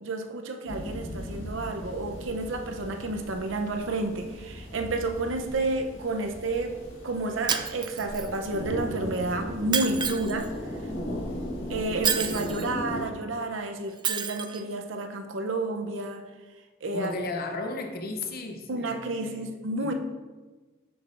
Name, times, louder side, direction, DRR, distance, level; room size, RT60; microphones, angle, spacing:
voice 1, 0.0-6.8 7.0-10.5 11.7-16.2 16.8-17.1 18.7-19.9, right 2 dB, 75° right, 5 dB, 0.7 m, -30 dB
sound 1, 0.7-13.1, equal, 90° left, 1.6 m, -37 dB
Shatter, 7.5-8.5 9.7-10.5 12.0-12.7 14.0-14.6, right 7 dB, 25° right, 0.3 m, -29 dB
voice 2, 16.9-19.9, left 2 dB, 50° left, 4 dB, 0.7 m, -35 dB
7.7 x 6.4 x 2.6 m, 1.3 s
head